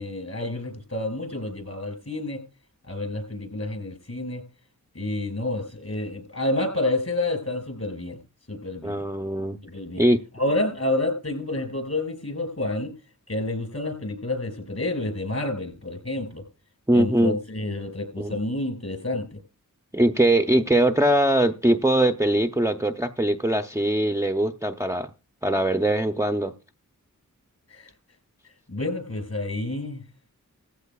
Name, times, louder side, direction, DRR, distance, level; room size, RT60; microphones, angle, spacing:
voice 1, 0.0-2.4 2.9-4.4 5.0-8.2 8.5-9.0 9.7-10.0 10.3-12.9 13.3-16.4 16.9-19.4 27.7-27.9 28.7-30.0, left 2 dB, 50° left, 6 dB, 5.3 m, -29 dB
voice 2, 8.8-9.6 10.0-10.2 16.9-17.4 18.2-18.4 19.9-25.1 25.4-26.5, right 1 dB, 10° right, 4 dB, 0.6 m, -21 dB
16.5 x 15.0 x 2.3 m, 0.32 s
wide cardioid pair, 55°, 34 cm